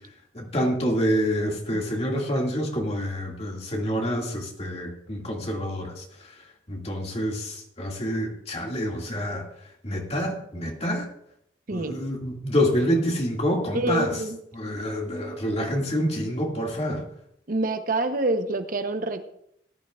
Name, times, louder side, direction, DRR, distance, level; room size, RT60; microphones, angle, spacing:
voice 1, 0.3-6.0 6.7-9.4 9.8-11.1 11.7-14.2 14.5-17.0, equal, 35° left, 0 dB, 2.1 m, -27 dB
voice 2, 13.7-14.4 17.5-19.2, right 2 dB, 50° right, 8 dB, 0.8 m, -26 dB
18.5 x 11.0 x 2.4 m, 0.74 s
head